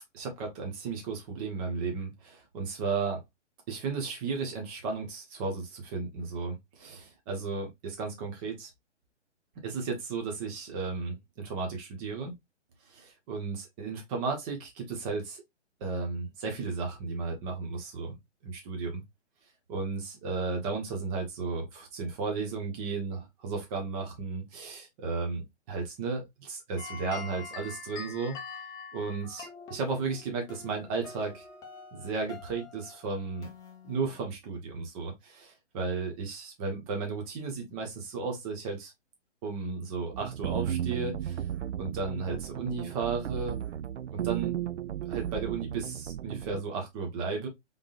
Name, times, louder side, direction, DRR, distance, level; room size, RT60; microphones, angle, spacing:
voice 1, 0.1-3.2 3.7-8.7 9.6-12.4 12.9-15.4 15.8-18.2 18.4-19.0 19.7-28.4 28.9-31.4 31.9-33.5 33.8-38.9 39.4-41.4 41.8-43.6 44.1-44.5 45.1-47.5, right 4 dB, 30° right, 1.5 m, -34 dB
sound 1, 26.8-34.3, left 4 dB, 10° left, 0.7 m, -45 dB
sound 2, 40.1-46.6, right 10 dB, 75° right, 0.5 m, -34 dB
3.7 x 3.6 x 2.6 m
figure-of-eight pair, 130°, 36 cm